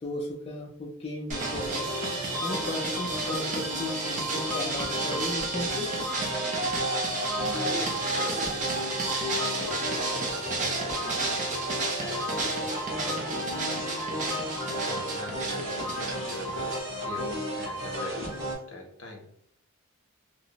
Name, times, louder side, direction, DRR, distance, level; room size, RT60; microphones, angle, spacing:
voice 1, 0.0-2.0 2.4-5.9, left 1 dB, 25° left, -1 dB, 0.3 m, -36 dB
sound 1, 1.3-16.8, right 3 dB, 35° right, 0.5 m, -32 dB
sound 2, 1.3-18.5, equal, 55° right, 1.5 m, -34 dB
voice 2, 7.5-11.3 12.0-14.1 14.7-19.3, left 1 dB, 65° left, 2 dB, 0.6 m, -42 dB
2.8 x 2.0 x 2.6 m, 0.69 s
head